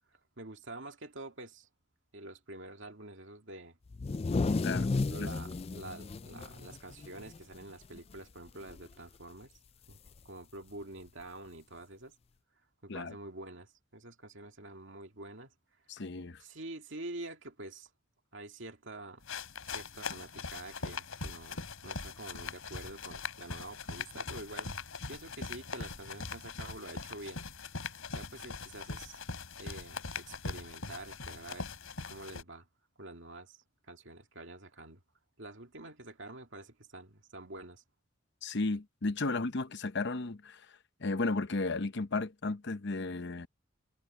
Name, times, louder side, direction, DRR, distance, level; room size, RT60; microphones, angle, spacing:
voice 1, 0.4-1.7 2.1-3.8 4.7-9.5 9.9-10.0 10.2-12.1 12.8-15.5 16.4-17.9 18.3-19.2 19.7-27.4 28.1-29.2 29.6-31.7 32.1-32.7 33.0-33.6 33.9-35.0 35.4-37.8, right 2 dB, 60° right, 2.3 m, -47 dB
sound 1, 3.9-7.6 8.0-8.1 8.5-8.9 10.1-10.2 11.2-11.3, left 3 dB, 30° left, 0.3 m, -33 dB
voice 2, 15.9-16.4 38.4-40.7 41.0-43.5, left 3 dB, 55° left, 0.8 m, -34 dB
sound 2, 19.2-32.4, left 4 dB, 85° left, 4.0 m, -41 dB
head